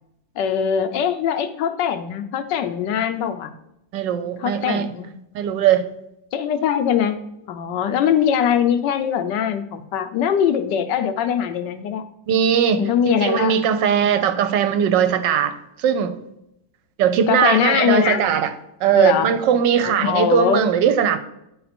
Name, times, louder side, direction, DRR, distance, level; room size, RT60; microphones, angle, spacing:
voice 1, 0.4-3.6 4.4-5.1 6.3-7.2 7.5-12.0 12.8-13.6 14.0-14.3 17.3-18.3 18.9-19.4 19.8-20.6, left 8 dB, 75° left, 8 dB, 1.2 m, -22 dB
voice 2, 3.9-4.9 5.3-5.9 12.3-16.2 17.0-18.5 18.8-21.2, right 8 dB, 75° right, 10 dB, 1.3 m, -19 dB
9.3 x 4.2 x 4.2 m, 0.83 s
omnidirectional pair, 2.0 m